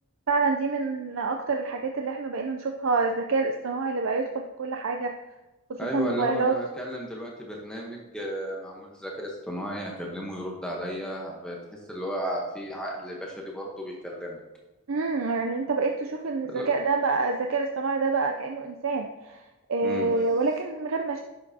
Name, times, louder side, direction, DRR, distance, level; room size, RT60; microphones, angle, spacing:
voice 1, 0.3-5.1 5.7-6.5 14.9-19.4 19.7-21.2, right 4 dB, 65° right, 3 dB, 0.5 m, -27 dB
voice 2, 5.8-14.4 16.5-16.7 19.8-20.1, equal, 5° left, -2 dB, 1.0 m, -34 dB
11.0 x 6.6 x 2.8 m, 1.1 s
head